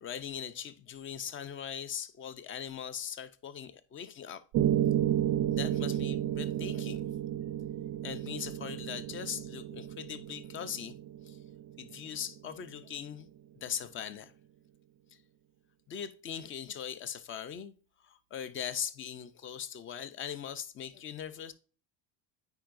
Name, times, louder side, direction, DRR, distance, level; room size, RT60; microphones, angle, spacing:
voice 1, 0.0-4.4 5.5-7.0 8.0-11.0 11.2-11.4 11.8-13.3 13.6-14.3 15.9-17.7 18.0-21.5, left 8 dB, 30° left, 0.5 m, -40 dB
Piano, 4.5-12.6, right 11 dB, 45° right, 0.5 m, -32 dB
9.0 x 4.7 x 2.5 m
cardioid pair, 140°, 46 cm